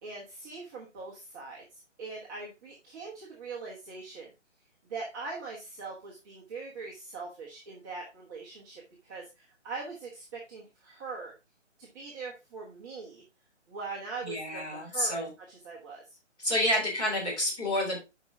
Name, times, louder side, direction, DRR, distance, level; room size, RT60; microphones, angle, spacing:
voice 1, 0.0-4.3 4.9-11.3 11.8-13.2 13.7-16.2, right 4 dB, 15° right, -5 dB, 1.2 m, -42 dB
voice 2, 14.2-15.3 16.4-18.0, left 1 dB, 10° left, -5 dB, 3.6 m, -29 dB
9.5 x 5.4 x 3.6 m, 0.26 s
hypercardioid pair, 160°, 36 cm